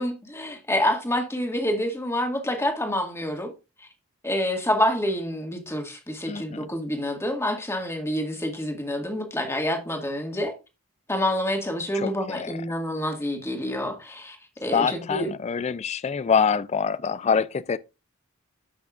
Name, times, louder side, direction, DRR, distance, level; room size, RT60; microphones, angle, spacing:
voice 1, 0.0-3.5 4.2-10.5 11.1-14.4 14.6-15.3, left 1 dB, 10° left, 1.9 m, -27 dB
voice 2, 6.3-6.7 11.9-12.6 14.7-17.8, left 6 dB, 30° left, 0.3 m, -25 dB
14.0 x 6.1 x 2.5 m
head